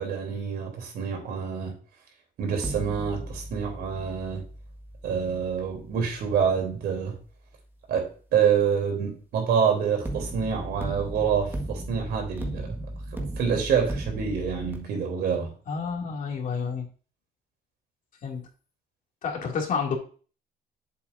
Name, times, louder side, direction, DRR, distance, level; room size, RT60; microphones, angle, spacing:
voice 1, 0.0-1.7 2.4-4.4 5.0-7.1 7.9-12.8 13.1-15.5, right 7 dB, 70° right, 2 dB, 3.4 m, -27 dB
sound 1, 2.6-7.6 10.0-14.8, right 1 dB, 15° right, 1.7 m, -37 dB
voice 2, 15.7-16.9 18.2-18.5 19.2-20.0, left 5 dB, 50° left, 0 dB, 2.6 m, -29 dB
8.2 x 7.5 x 2.7 m, 0.39 s
cardioid pair, 110°, 17 cm